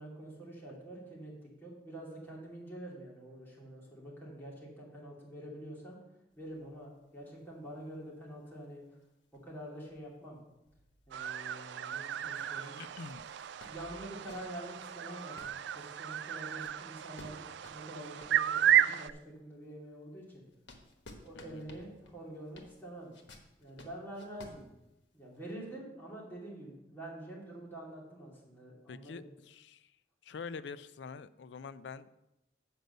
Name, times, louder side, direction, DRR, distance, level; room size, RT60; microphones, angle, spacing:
voice 1, 0.0-1.3 1.6-6.0 6.4-8.8 9.4-10.4 11.1-12.8 13.6-17.4 17.7-20.4 21.2-23.1 23.6-24.7 25.1-29.2, right 1 dB, 10° left, -5 dB, 2.5 m, -46 dB
sound 1, 6.3-11.7 12.0-12.1 12.7-19.1 19.6-25.4, left 2 dB, 85° left, 1.3 m, -57 dB
sound 2, 11.1-19.1, right 10 dB, 70° right, 0.3 m, -33 dB
voice 2, 12.2-13.2 21.4-21.7 28.9-29.9 30.2-32.1, left 5 dB, 70° left, 15 dB, 0.4 m, -46 dB
7.8 x 5.2 x 6.7 m, 0.92 s
head